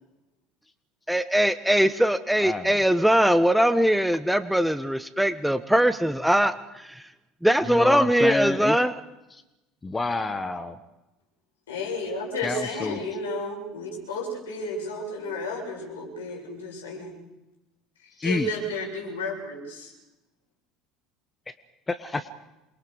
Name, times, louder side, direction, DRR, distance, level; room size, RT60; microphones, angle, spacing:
voice 1, 1.1-6.9 7.4-8.9, equal, ahead, 11 dB, 1.1 m, -21 dB
voice 2, 2.4-2.7 7.6-8.8 9.3-9.4 9.8-10.8 12.4-13.0 18.2-18.5 21.9-22.3, left 3 dB, 20° left, 11 dB, 1.3 m, -28 dB
voice 3, 11.7-17.1 18.2-19.9, left 2 dB, 80° left, 0 dB, 6.8 m, -32 dB
27.5 x 22.5 x 4.9 m, 0.98 s
hypercardioid pair, 70°, 0 cm